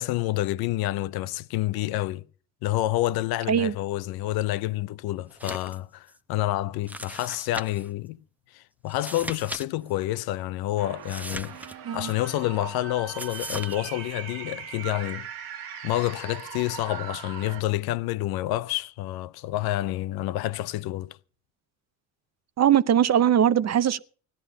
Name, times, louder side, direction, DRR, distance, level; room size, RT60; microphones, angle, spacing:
voice 1, 0.0-2.2 2.6-8.2 8.5-11.6 11.9-15.3 15.8-21.2, left 15 dB, 75° left, 0.7 m, -28 dB
sound 1, 5.3-5.8 6.1-6.2 6.9-7.9 8.9-9.6 9.9-10.0 11.0-12.1 13.2-13.8, right 1 dB, 5° right, 0.8 m, -38 dB
sound 2, 10.8-17.6, right 7 dB, 85° right, 1.7 m, -40 dB
voice 2, 22.6-24.0, right 9 dB, 45° right, 0.7 m, -21 dB
16.5 x 11.5 x 5.5 m
supercardioid pair, 75°, 37 cm